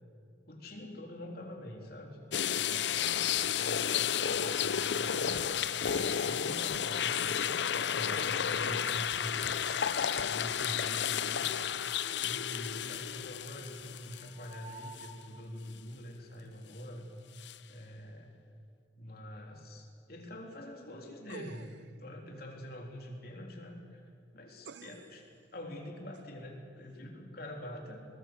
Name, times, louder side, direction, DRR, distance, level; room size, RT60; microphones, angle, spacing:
voice 1, 0.5-2.2 2.5-5.3 5.9-9.4 10.2-11.4 12.2-17.1 17.7-18.4 19.0-21.7 22.0-24.0 24.3-25.2 25.5-28.0, left 1 dB, 55° left, 1 dB, 3.5 m, -45 dB
sound 1, 0.7-1.5 2.5-7.1 9.2-15.1, right 1 dB, 35° right, 2.1 m, -56 dB
sound 2, 2.3-14.5 15.0-15.1 17.4-17.6, left 8 dB, 75° left, 0.6 m, -32 dB
sound 3, 21.3-22.0 24.6-25.2 26.1-26.2, right 6 dB, 80° right, 0.5 m, -49 dB
24.5 x 20.5 x 8.0 m, 2.3 s
head